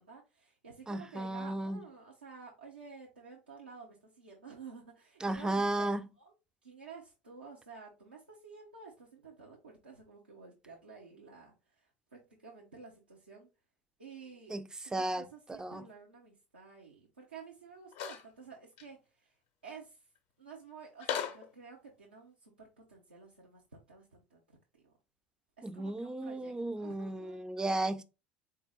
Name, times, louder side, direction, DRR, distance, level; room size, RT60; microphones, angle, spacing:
voice 1, 0.0-5.9 6.2-6.3 6.6-13.5 14.0-14.5 14.9-19.3 19.6-20.1 20.4-24.4 24.7-24.9 25.6-27.4, right 5 dB, 80° right, 0.8 m, -52 dB
voice 2, 0.9-1.8 5.2-6.1 14.5-15.2 15.5-15.9 25.6-28.0, right 2 dB, 15° right, 0.4 m, -34 dB
sound 1, 17.9-18.2 18.8-18.9 21.0-21.5, left 8 dB, 55° left, 0.7 m, -36 dB
4.0 x 2.7 x 3.8 m
figure-of-eight pair, 65°, 5 cm